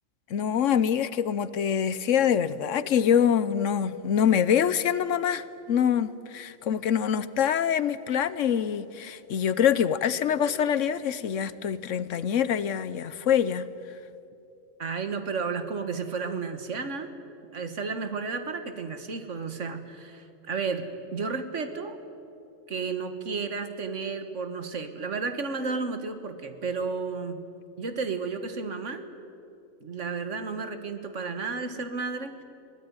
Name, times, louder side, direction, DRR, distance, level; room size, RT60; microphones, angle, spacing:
voice 1, 0.3-13.7, left 8 dB, 70° left, 15 dB, 1.1 m, -25 dB
voice 2, 14.8-17.1 17.5-22.0 22.7-27.4 27.8-29.0 29.8-32.4, right 4 dB, 65° right, 8 dB, 1.8 m, -32 dB
23.0 x 17.0 x 9.6 m, 2.7 s
omnidirectional pair, 1.4 m